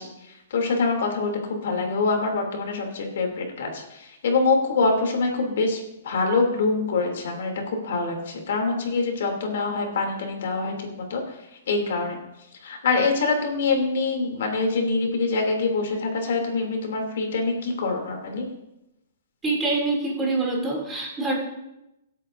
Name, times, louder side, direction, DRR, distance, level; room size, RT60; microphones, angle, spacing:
voice 1, 0.0-11.4 11.7-12.2 12.6-18.5, left 3 dB, 65° left, 2 dB, 2.8 m, -25 dB
voice 2, 19.4-21.3, right 3 dB, 10° right, -3 dB, 2.8 m, -25 dB
24.5 x 8.5 x 2.6 m, 0.91 s
hypercardioid pair, 165°, 0 cm